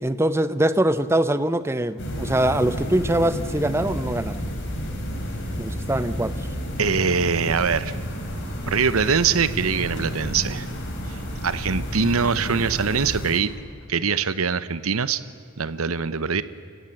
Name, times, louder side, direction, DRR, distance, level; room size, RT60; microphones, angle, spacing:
voice 1, 0.0-4.4 5.6-6.5, right 1 dB, 10° right, 13 dB, 0.6 m, -23 dB
sound 1, 2.0-13.4, equal, 55° left, 4.0 m, -31 dB
voice 2, 6.8-8.0 8.7-10.7 11.1-13.5 13.9-15.2 15.6-16.4, right 5 dB, 80° right, 15 dB, 0.9 m, -23 dB
29.5 x 16.0 x 7.6 m, 2.5 s
head